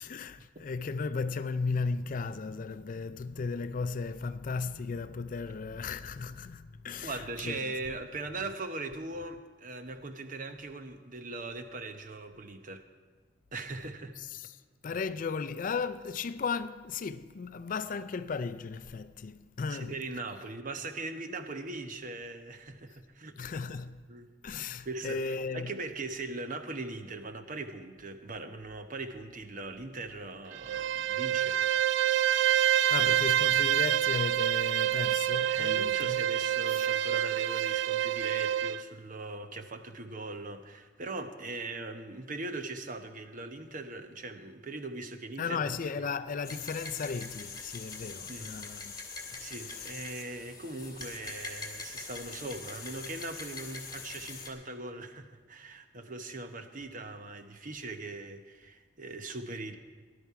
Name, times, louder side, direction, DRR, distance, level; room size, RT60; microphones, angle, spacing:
voice 1, 0.0-7.8 14.1-20.2 23.4-24.0 24.4-25.8 32.9-36.2 36.7-36.8 45.4-48.9 49.3-49.9, left 4 dB, 50° left, 0.4 m, -36 dB
voice 2, 7.0-12.8 13.5-14.1 14.9-15.0 19.7-23.4 24.1-24.3 24.8-31.6 33.0-33.6 35.5-45.7 46.0-46.1 48.3-48.5 49.4-59.8, right 2 dB, 45° right, 0.9 m, -40 dB
Bowed string instrument, 30.5-38.8, right 11 dB, 85° right, 0.4 m, -27 dB
sound 1, 46.4-54.5, left 4 dB, 25° left, 2.0 m, -43 dB
18.0 x 11.5 x 4.7 m
head